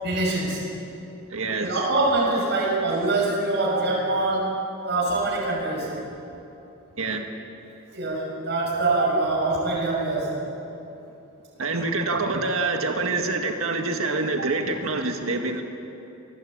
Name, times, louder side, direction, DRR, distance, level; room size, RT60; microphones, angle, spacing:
voice 1, 0.0-0.6 1.6-4.6 4.8-5.9 7.9-10.4 14.4-14.5, right 2 dB, 50° right, -4 dB, 6.5 m, -24 dB
voice 2, 1.3-1.7 7.0-7.4 11.6-15.6, right 3 dB, 70° right, 4 dB, 1.8 m, -26 dB
25.5 x 20.0 x 8.8 m, 2.9 s
head